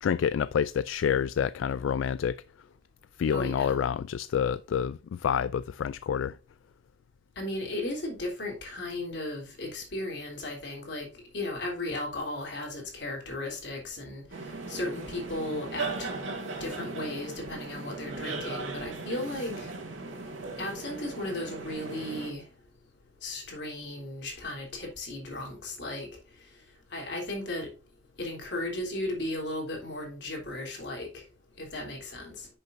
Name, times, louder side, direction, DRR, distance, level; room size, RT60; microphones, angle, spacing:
voice 1, 0.0-2.4 3.2-6.4, left 8 dB, 80° left, 0.3 m, -28 dB
voice 2, 3.3-3.8 7.4-11.1 11.3-14.2 14.7-16.1 16.4-19.7 20.6-22.5 23.2-26.1 26.9-27.7 28.2-31.2 31.6-32.5, left 1 dB, 60° left, 3.3 m, -35 dB
sound 1, 14.3-22.3, right 3 dB, 85° right, 2.0 m, -38 dB
10.0 x 6.5 x 2.6 m
head